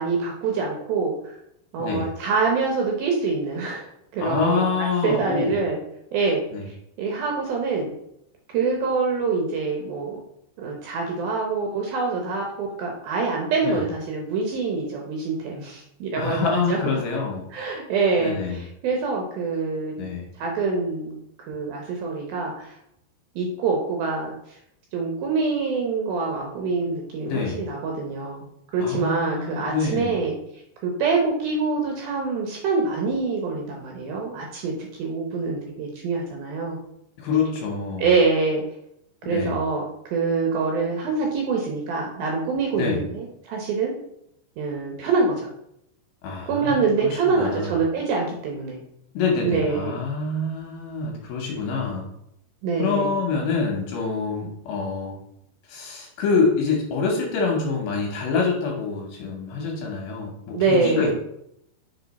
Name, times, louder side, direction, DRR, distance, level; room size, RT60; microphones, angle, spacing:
voice 1, 0.0-1.4 1.7-3.9 4.1-4.7 5.0-5.8 6.1-7.9 8.5-10.2 10.6-16.8 17.5-20.0 20.4-21.1 21.5-22.8 23.4-24.3 24.9-28.5 28.7-30.4 30.8-34.7 35.0-36.8 38.0-38.6 39.3-39.8 40.1-43.9 44.6-45.5 46.5-48.8 49.4-50.0 52.6-53.1 60.5-61.1, right 4 dB, 75° right, 0 dB, 2.3 m, -25 dB
voice 2, 4.2-5.6 6.5-6.7 13.6-13.8 16.2-17.5 18.2-18.6 20.0-20.3 27.3-27.6 28.8-30.2 37.2-38.1 39.2-39.6 42.7-43.0 46.2-47.8 49.1-52.1 52.8-55.2 55.7-61.1, left 4 dB, 75° left, -1 dB, 2.4 m, -26 dB
6.8 x 3.9 x 4.0 m, 0.79 s
omnidirectional pair, 5.0 m